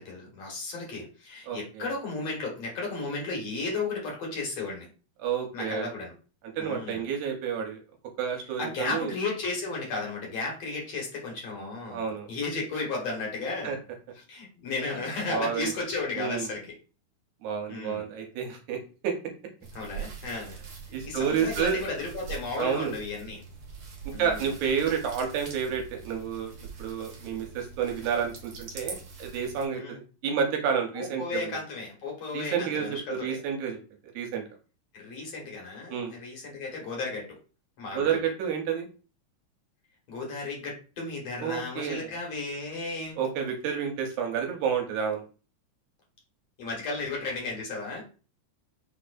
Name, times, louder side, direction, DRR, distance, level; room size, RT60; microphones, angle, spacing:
voice 1, 0.0-4.9 5.5-6.1 6.6-7.0 8.6-13.7 14.3-16.7 17.7-18.1 19.7-20.6 21.0-23.4 24.1-24.5 29.7-30.0 30.9-33.4 34.9-37.4 37.8-38.2 40.1-43.2 46.6-48.0, left 3 dB, 60° left, -1 dB, 2.3 m, -34 dB
voice 2, 1.5-1.9 5.2-5.9 6.6-7.8 8.2-9.1 11.9-12.3 13.6-13.8 15.3-15.7 16.2-16.5 17.4-18.8 19.0-19.1 20.9-21.8 22.6-22.9 24.2-26.5 26.8-31.6 32.3-33.8 34.1-34.4 35.9-36.2 37.9-38.9 41.4-42.1 43.2-45.2, right 7 dB, 75° right, 3 dB, 2.0 m, -30 dB
sound 1, 19.6-29.6, right 6 dB, 55° right, 1.6 m, -43 dB
6.3 x 3.2 x 2.5 m, 0.35 s
omnidirectional pair, 3.6 m